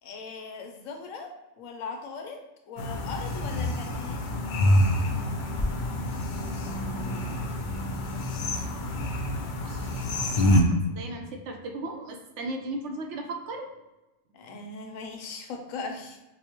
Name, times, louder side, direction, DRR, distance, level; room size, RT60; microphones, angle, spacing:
voice 1, 0.0-2.4 2.7-4.2 14.3-16.2, left 4 dB, 90° left, 3 dB, 1.0 m, -39 dB
sound 1, 2.8-10.6, left 1 dB, 70° left, 0.4 m, -27 dB
voice 2, 10.3-13.7, right 2 dB, 70° right, 3 dB, 0.8 m, -37 dB
5.0 x 2.0 x 2.9 m, 1.0 s
omnidirectional pair, 1.4 m